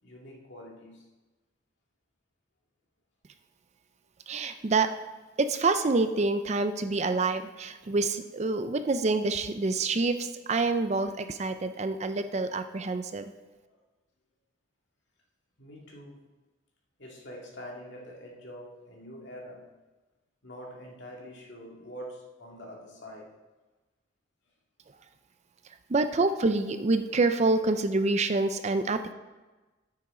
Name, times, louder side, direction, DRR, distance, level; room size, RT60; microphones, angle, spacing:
voice 1, 0.0-1.1 13.5-13.8 15.6-16.2 17.0-19.6 20.4-23.3 26.3-26.4 27.0-27.1, equal, 60° left, -2 dB, 2.3 m, -45 dB
voice 2, 4.3-4.9 5.4-13.2 25.9-29.1, right 3 dB, 35° right, 10 dB, 0.4 m, -27 dB
9.9 x 8.7 x 3.8 m, 1.2 s
head